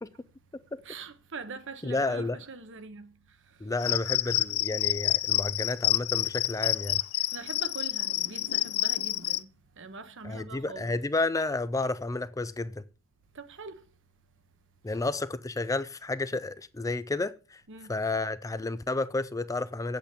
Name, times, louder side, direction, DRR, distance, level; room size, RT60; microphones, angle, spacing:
voice 1, 0.8-3.1 3.8-4.3 4.8-4.9 7.3-11.0 13.3-13.8 17.7-18.0, right 4 dB, 60° right, 1.1 m, -43 dB
voice 2, 1.8-2.4 3.6-7.0 10.2-12.7 14.8-17.6 17.9-20.0, left 2 dB, 15° left, 0.4 m, -31 dB
Cricket, 3.8-9.4, left 15 dB, 75° left, 0.4 m, -28 dB
8.5 x 8.2 x 6.7 m
head